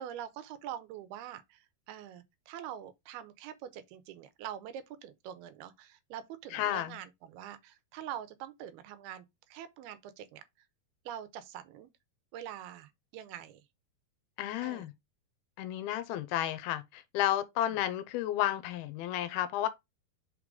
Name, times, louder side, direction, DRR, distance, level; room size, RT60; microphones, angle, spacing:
voice 1, 0.0-10.4 11.1-11.9 12.3-13.6 14.6-14.9 17.7-17.8, right 10 dB, 80° right, 2.8 m, -44 dB
voice 2, 6.5-6.9 14.4-14.9 15.6-19.7, left 12 dB, 90° left, 2.6 m, -32 dB
5.7 x 4.8 x 3.8 m
omnidirectional pair, 4.5 m